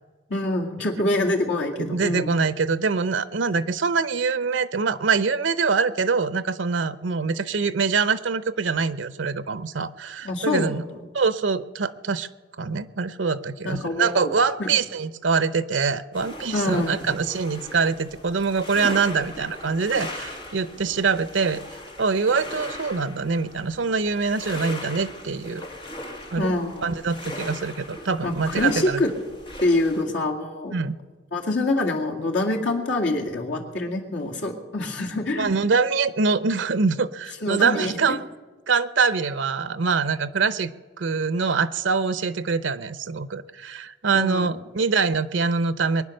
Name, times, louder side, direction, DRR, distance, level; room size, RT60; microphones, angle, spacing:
voice 1, 0.3-2.3 10.2-11.1 13.6-14.3 14.6-14.7 16.5-17.0 26.4-26.9 28.2-29.1 29.6-30.8 31.3-35.5 37.4-38.2 44.1-44.5, left 2 dB, 75° left, 0 dB, 2.2 m, -25 dB
voice 2, 1.8-10.8 11.1-12.3 12.6-21.6 22.0-25.7 26.3-26.5 26.8-29.0 30.7-31.0 35.3-38.2 38.7-40.7 41.0-46.0, right 5 dB, 90° right, 15 dB, 0.7 m, -24 dB
sound 1, 16.1-30.0, left 1 dB, 25° left, 1.7 m, -39 dB
22.5 x 9.7 x 6.5 m, 1.3 s
head